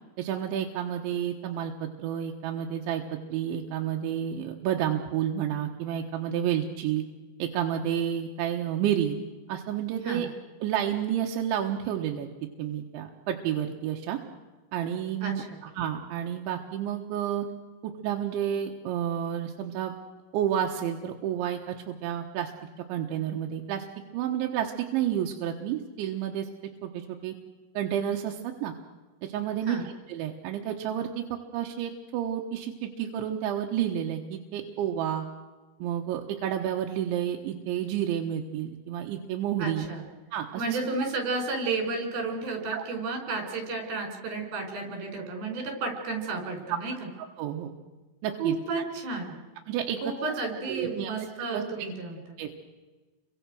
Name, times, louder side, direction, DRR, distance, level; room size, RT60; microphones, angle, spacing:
voice 1, 0.2-7.0 7.4-9.2 9.5-10.3 10.6-12.3 12.6-14.2 14.7-17.5 17.8-20.0 20.3-22.5 22.9-23.9 24.1-26.5 26.8-27.4 27.8-28.7 29.2-29.8 30.1-31.2 31.5-35.3 35.8-39.9 40.3-41.1 42.7-42.8 46.7-46.8 47.4-47.7 48.2-48.6 49.7-50.3 50.7-51.1 51.5-51.6 52.4-52.5, right 10 dB, 85° right, 2 dB, 3.7 m, -30 dB
voice 2, 15.2-15.6 29.7-29.9 39.6-40.0 40.5-47.1 48.4-49.4 50.0-52.4, right 3 dB, 55° right, 4 dB, 6.8 m, -32 dB
30.0 x 24.0 x 6.4 m, 1.3 s
omnidirectional pair, 5.2 m